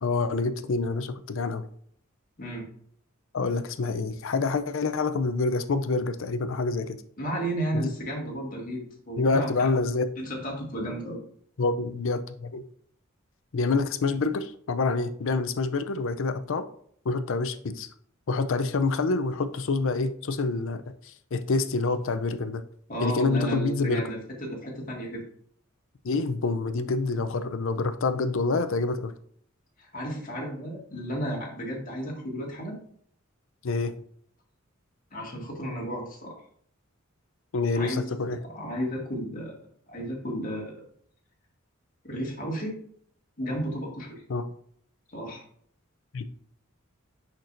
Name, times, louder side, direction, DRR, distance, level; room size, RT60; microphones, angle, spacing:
voice 1, 0.0-1.7 3.3-7.0 7.7-7.9 9.2-10.1 11.6-12.6 13.5-16.7 17.0-17.9 18.3-22.6 23.0-24.1 26.0-29.1 33.6-33.9 37.5-38.4 44.3-44.5 46.1-46.2, left 3 dB, 65° left, 10 dB, 0.5 m, -27 dB
voice 2, 7.2-9.7 10.2-11.2 22.9-25.2 29.8-32.8 35.1-36.4 37.7-38.1 38.4-39.5 39.9-40.8 42.0-42.8 43.4-44.2 45.1-45.4, right 1 dB, 40° left, -2 dB, 2.0 m, -33 dB
6.4 x 6.0 x 2.6 m, 0.62 s
head